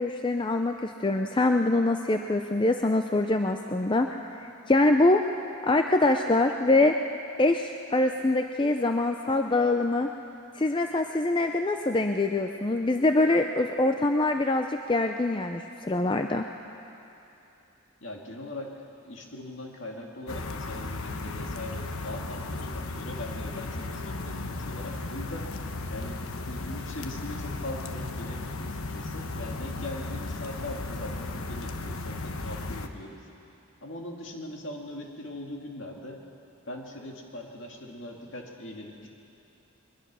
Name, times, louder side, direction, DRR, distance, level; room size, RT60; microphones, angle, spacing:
voice 1, 0.0-4.1 4.4-5.2 5.6-7.0 7.4-10.1 10.6-16.5, left 2 dB, 20° left, 5 dB, 0.5 m, -24 dB
voice 2, 18.0-25.5 25.9-33.3 33.8-36.3 36.7-39.1, left 1 dB, 60° left, 0 dB, 2.4 m, -41 dB
sound 1, 20.3-32.9, left 2 dB, 80° left, 1.1 m, -35 dB
22.0 x 21.0 x 6.2 m, 2.8 s
head